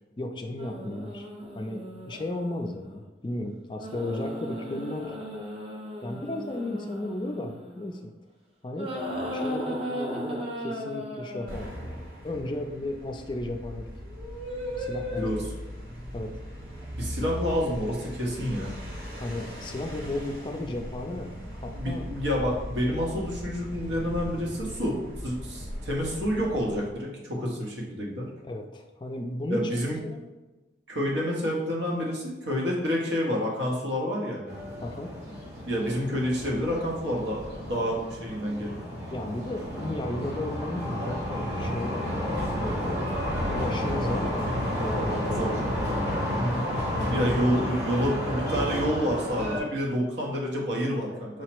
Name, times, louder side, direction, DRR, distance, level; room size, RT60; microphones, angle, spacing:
voice 1, 0.2-1.3 1.5-5.1 6.0-8.1 8.6-8.9 9.3-11.8 12.2-13.9 14.8-15.3 16.1-16.3 19.2-22.0 28.4-29.8 30.0-30.2 34.8-35.1 39.1-42.2 42.5-42.8 43.5-44.5 44.8-45.6 46.9-47.3, left 1 dB, 25° left, 4 dB, 0.3 m, -34 dB
sound 1, 0.6-2.7 3.8-8.1 8.8-11.7 14.0-15.6 16.8-17.0, equal, 30° right, 0.6 m, -36 dB
sound 2, 11.5-27.0, equal, 50° right, 1.0 m, -39 dB
voice 2, 17.0-18.7 21.8-25.0 25.2-28.2 29.5-30.0 30.9-34.5 35.6-38.8 45.3-45.6 46.4-46.7 47.1-51.4, equal, 85° right, -2 dB, 1.0 m, -28 dB
sound 3, 34.5-49.6, equal, 70° right, 1.4 m, -31 dB
4.7 x 2.0 x 4.4 m, 1.1 s
head